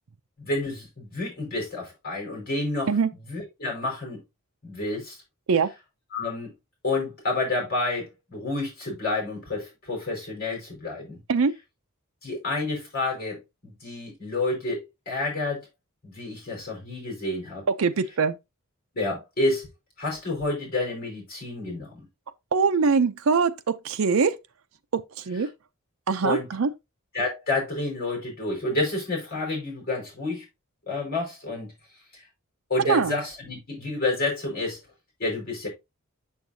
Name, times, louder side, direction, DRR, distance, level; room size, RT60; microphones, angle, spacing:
voice 1, 0.4-2.9 3.3-4.2 4.6-5.2 6.1-6.5 6.8-11.2 12.2-15.6 16.0-17.6 18.9-19.7 20.0-22.0 26.2-26.5 27.1-30.4 30.9-31.7 32.1-32.2 32.7-34.8 35.2-35.7, left 2 dB, 45° left, 5.0 m, -29 dB
voice 2, 17.8-18.4 22.5-24.4 24.9-25.5 26.1-26.7 32.8-33.1, right 5 dB, 70° right, 0.5 m, -23 dB
7.0 x 6.5 x 2.7 m
head